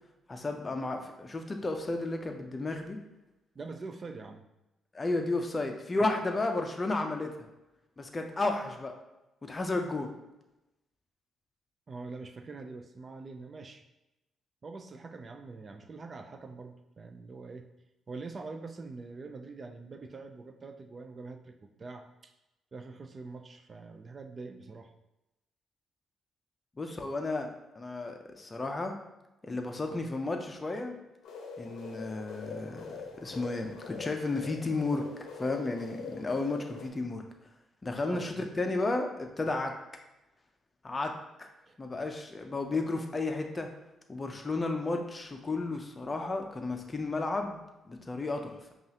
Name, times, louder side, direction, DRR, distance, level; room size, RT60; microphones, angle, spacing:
voice 1, 0.3-3.0 4.9-7.5 8.0-8.9 9.4-10.1 26.8-27.5 27.8-29.0 29.4-31.0 31.6-32.9 33.2-35.1 35.3-37.2 37.8-39.7 40.8-41.1 41.4-41.5 41.8-43.7 44.1-48.5, left 2 dB, 25° left, 4 dB, 0.5 m, -33 dB
voice 2, 3.5-4.4 11.9-13.8 14.6-17.7 18.1-22.3 22.7-24.9 38.0-38.5 39.4-39.5 41.7-41.8, right 3 dB, 35° right, 6 dB, 0.4 m, -44 dB
sound 1, 31.2-36.9, left 4 dB, 80° left, 0.6 m, -43 dB
5.3 x 2.4 x 2.8 m, 0.96 s
cardioid pair, 90°, 0 cm